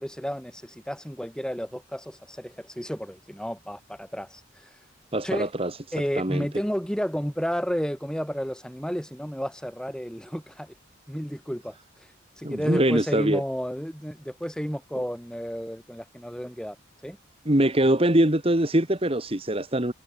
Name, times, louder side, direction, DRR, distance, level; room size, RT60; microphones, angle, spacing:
voice 1, 0.0-4.7 5.2-5.5 5.9-10.7 11.1-11.8 12.4-16.8 17.0-17.2, equal, 5° left, 6.2 m, -31 dB
voice 2, 5.1-5.8 6.2-6.5 12.4-13.4 17.5-19.9, right 1 dB, 30° right, 1.9 m, -23 dB
head